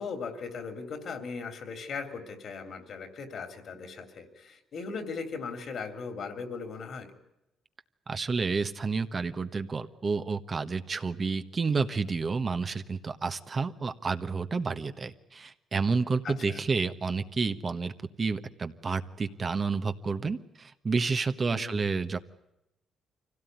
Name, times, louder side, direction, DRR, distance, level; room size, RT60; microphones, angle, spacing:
voice 1, 0.0-7.1 16.2-16.6 21.5-21.8, left 5 dB, 60° left, 9 dB, 3.3 m, -38 dB
voice 2, 8.1-22.2, right 4 dB, 35° right, 9 dB, 1.2 m, -30 dB
24.5 x 17.0 x 9.4 m, 0.88 s
cardioid pair, 90°, 0 cm